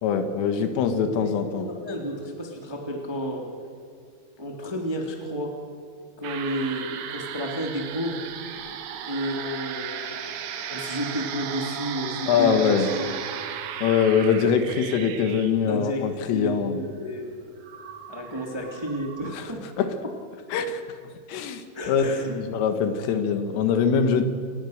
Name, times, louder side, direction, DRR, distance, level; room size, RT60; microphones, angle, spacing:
voice 1, 0.0-1.7 12.3-12.9 13.8-16.8 19.3-19.5 19.8-19.9 20.5-20.8 21.3-22.1 22.4-24.3, left 6 dB, 85° left, 8 dB, 4.1 m, -23 dB
voice 2, 1.2-3.5 4.4-5.5 6.2-8.2 9.0-13.4 15.6-16.1 16.3-17.3 18.1-19.6 21.7-22.4, equal, 10° right, 1 dB, 1.5 m, -32 dB
sound 1, 6.2-19.4, right 9 dB, 85° right, 4.0 m, -36 dB
28.0 x 20.0 x 6.6 m, 2.4 s
omnidirectional pair, 5.7 m